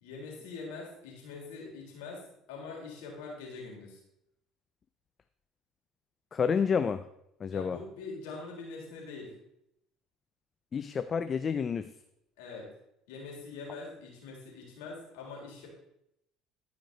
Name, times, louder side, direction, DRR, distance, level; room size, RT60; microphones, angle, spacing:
voice 1, 0.0-2.2 2.5-4.0 7.5-9.4 12.4-12.7 13.1-15.7, left 4 dB, 85° left, -1 dB, 3.5 m, -43 dB
voice 2, 6.3-7.0 7.4-7.8 10.7-11.9, left 6 dB, 35° left, 11 dB, 0.4 m, -29 dB
14.0 x 5.2 x 3.9 m, 0.79 s
supercardioid pair, 90°, 0 cm